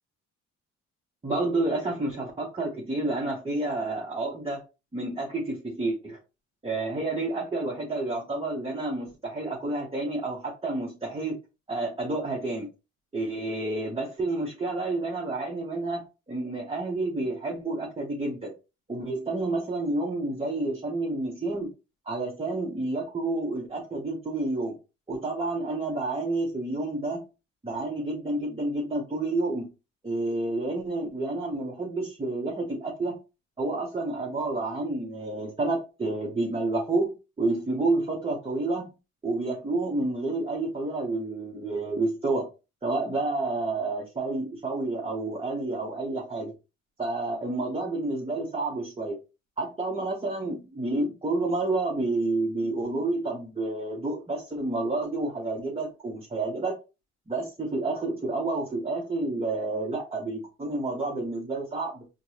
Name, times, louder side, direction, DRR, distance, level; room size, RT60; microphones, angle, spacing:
voice 1, 1.2-4.6 4.9-6.2 6.6-11.4 11.7-12.7 13.1-18.5 18.9-21.7 22.1-24.8 25.1-27.2 27.6-29.7 30.0-33.2 33.6-38.9 39.2-42.5 42.8-46.5 47.0-49.2 49.6-56.7 57.3-62.0, right 2 dB, 20° right, -2 dB, 0.9 m, -29 dB
4.5 x 2.2 x 2.8 m, 0.29 s
cardioid pair, 90°, 30 cm